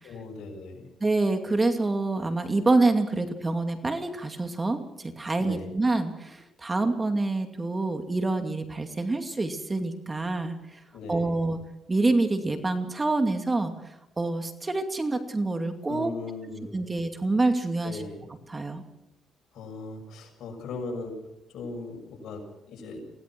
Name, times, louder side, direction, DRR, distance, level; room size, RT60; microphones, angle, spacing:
voice 1, 0.0-0.9 5.4-5.7 10.9-11.4 15.9-16.8 17.8-18.3 19.5-21.2 21.5-23.0, left 3 dB, 75° left, 2 dB, 6.8 m, -38 dB
voice 2, 1.0-10.8 11.1-11.6 11.9-13.7 14.2-16.1 16.7-18.0 18.5-18.8, right 2 dB, 25° right, 6 dB, 2.5 m, -26 dB
24.5 x 17.5 x 6.2 m, 0.86 s
cardioid pair, 90°, 0 cm